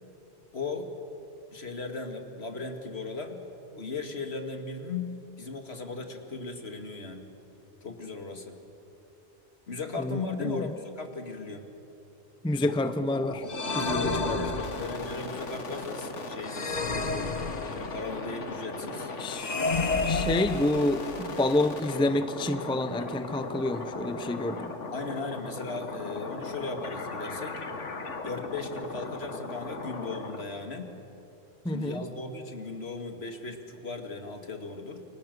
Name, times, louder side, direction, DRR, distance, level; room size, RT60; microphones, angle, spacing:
voice 1, 0.5-0.9 1.5-3.4 3.7-7.3 7.8-8.6 9.7-11.7 13.8-16.8 17.7-19.1 24.9-27.6 28.2-30.9 31.7-35.0, left 3 dB, 60° left, 5 dB, 2.3 m, -37 dB
voice 2, 10.0-10.6 12.4-13.4 13.7-14.4 19.2-19.6 20.0-24.7 31.6-32.0, left 1 dB, 5° left, 10 dB, 0.6 m, -28 dB
sound 1, 12.6-30.4, left 3 dB, 90° left, 2.0 m, -38 dB
sound 2, 13.5-15.2 16.5-18.1 19.3-21.2, left 3 dB, 40° left, 1.2 m, -30 dB
29.0 x 23.5 x 6.8 m, 2.9 s
omnidirectional pair, 1.2 m